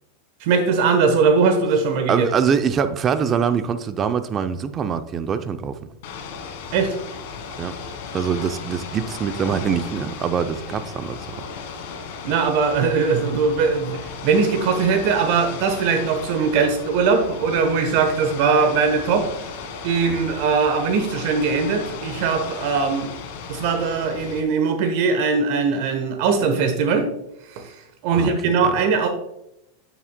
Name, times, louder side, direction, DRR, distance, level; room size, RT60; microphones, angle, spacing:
voice 1, 0.4-2.3 6.7-6.9 12.2-19.3 19.8-23.1 23.5-27.1 27.5-27.7 28.0-29.1, right 5 dB, 55° right, 7 dB, 1.0 m, -20 dB
voice 2, 2.1-5.8 7.6-7.8 8.1-11.2 20.1-20.3 28.1-28.7, right 7 dB, 25° right, 10 dB, 0.5 m, -24 dB
Ocean / Boat Water vehicle, 6.0-24.4, left 5 dB, 65° left, 1.6 m, -35 dB
8.4 x 7.1 x 2.2 m, 0.81 s
supercardioid pair, 140°, 0 cm